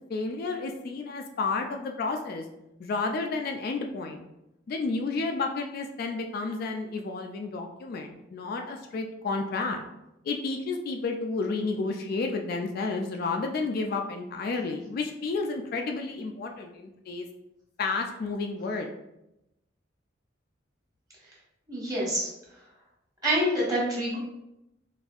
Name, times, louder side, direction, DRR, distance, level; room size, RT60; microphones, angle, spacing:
voice 1, 0.1-2.4 2.8-4.3 4.7-9.8 10.2-17.3 17.8-18.9, left 3 dB, 50° left, 3 dB, 0.3 m, -31 dB
voice 2, 21.7-22.3 23.2-24.2, equal, 20° right, -5 dB, 1.3 m, -26 dB
4.1 x 2.6 x 2.4 m, 0.89 s
head